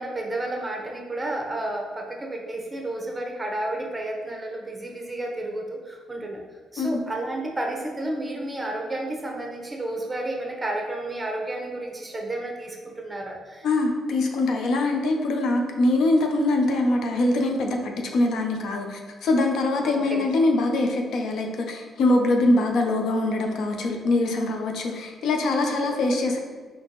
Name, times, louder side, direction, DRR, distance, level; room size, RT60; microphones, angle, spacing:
voice 1, 0.0-6.4 6.7-13.7 19.8-20.3 25.6-25.7, right 1 dB, 20° right, 0 dB, 0.8 m, -31 dB
voice 2, 13.6-26.4, left 2 dB, 75° left, 3 dB, 0.5 m, -23 dB
4.2 x 2.9 x 2.9 m, 1.5 s
cardioid pair, 90°, 0 cm